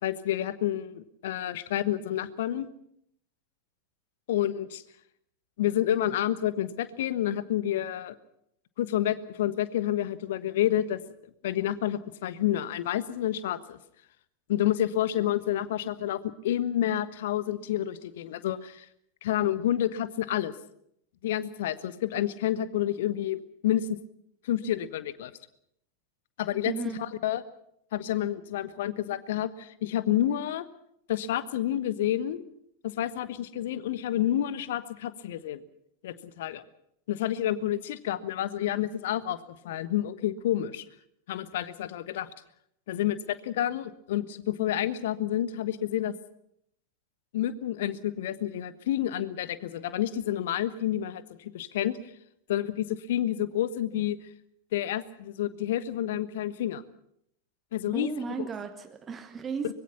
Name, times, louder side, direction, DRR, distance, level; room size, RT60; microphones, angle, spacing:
voice 1, 0.0-2.7 4.3-4.8 5.6-8.1 8.8-11.0 11.4-13.8 14.5-18.9 19.2-20.5 21.2-24.0 24.4-25.3 26.4-26.7 27.0-27.4 27.9-30.7 31.1-32.4 32.8-35.6 36.0-36.6 37.1-39.4 39.6-40.8 41.3-42.3 42.9-46.1 47.3-52.0 52.5-54.2 54.7-56.8 57.7-58.1, left 12 dB, 55° left, 14 dB, 1.3 m, -29 dB
voice 2, 26.6-27.0 57.9-59.7, right 6 dB, 20° right, 8 dB, 1.6 m, -34 dB
24.5 x 21.5 x 5.9 m, 0.72 s
figure-of-eight pair, 90°, 0 cm